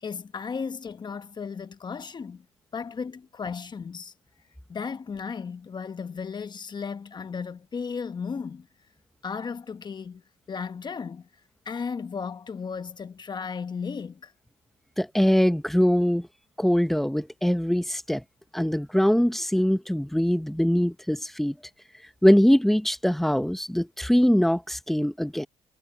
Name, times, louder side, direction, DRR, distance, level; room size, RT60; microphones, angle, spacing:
voice 1, 0.0-2.4 2.7-4.1 4.7-8.7 9.2-10.2 10.5-11.3 11.7-14.3, left 5 dB, 30° left, 1.2 m, -35 dB
voice 2, 15.0-16.3 16.6-18.2 18.5-21.5 22.2-25.5, equal, ahead, 1.2 m, -22 dB
supercardioid pair, 90°, 15 cm